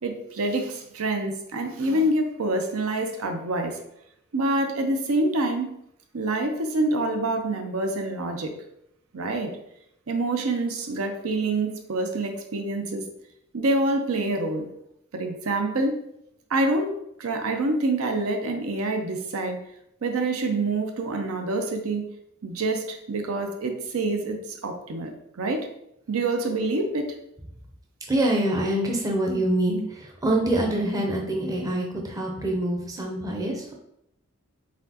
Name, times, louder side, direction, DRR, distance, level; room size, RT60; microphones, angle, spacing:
voice 1, 0.0-3.8 4.3-5.7 6.1-8.5 9.1-9.5 10.1-13.0 13.5-14.7 15.1-15.9 16.5-16.9 17.2-19.6 20.0-22.0 22.4-25.1 25.4-25.6 26.1-27.1, right 2 dB, 90° right, 4 dB, 0.6 m, -26 dB
voice 2, 28.1-29.8 30.2-33.7, right 1 dB, 15° right, 1 dB, 0.5 m, -25 dB
4.1 x 3.6 x 2.8 m, 0.77 s
head